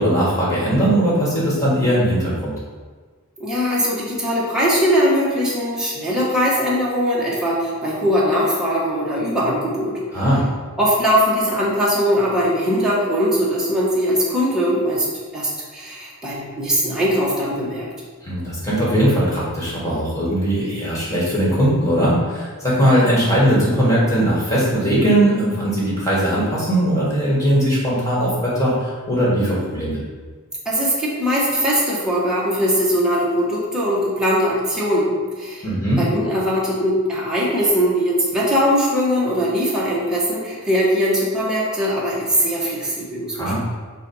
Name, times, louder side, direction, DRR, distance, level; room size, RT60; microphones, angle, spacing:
voice 1, 0.0-2.5 10.1-10.4 18.2-30.0 35.6-36.0 43.3-43.6, right 1 dB, 15° left, -7 dB, 1.9 m, -19 dB
voice 2, 3.4-10.2 10.8-15.1 15.3-17.9 30.6-35.7 36.0-43.6, equal, 5° right, -8 dB, 1.3 m, -20 dB
7.4 x 2.6 x 5.5 m, 1.5 s
head